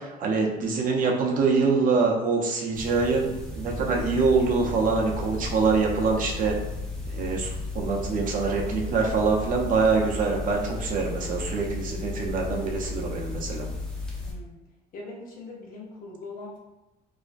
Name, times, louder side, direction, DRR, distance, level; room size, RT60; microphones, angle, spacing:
voice 1, 0.0-6.5 7.1-13.7, right 4 dB, 55° right, 0 dB, 0.5 m, -25 dB
sound 1, 2.7-14.3, left 3 dB, 5° left, 0.5 m, -34 dB
voice 2, 14.9-16.6, left 2 dB, 55° left, -2 dB, 0.7 m, -41 dB
2.4 x 2.1 x 2.5 m, 0.99 s
cardioid pair, 110°, 17 cm